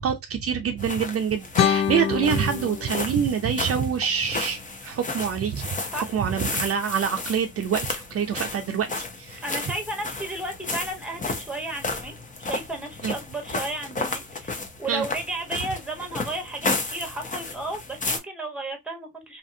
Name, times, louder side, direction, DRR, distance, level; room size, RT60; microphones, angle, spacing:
voice 1, 0.0-5.7 5.9-9.4 13.0-13.1 14.9-15.0, right 7 dB, 50° right, 0.6 m, -26 dB
sound 1, 0.8-18.2, left 3 dB, 25° left, 0.7 m, -33 dB
sound 2, 1.6-4.6, left 9 dB, 60° left, 0.5 m, -27 dB
voice 2, 9.4-12.1 12.4-19.4, right 2 dB, 5° right, 1.0 m, -33 dB
2.8 x 2.5 x 2.6 m
cardioid pair, 90°, 30 cm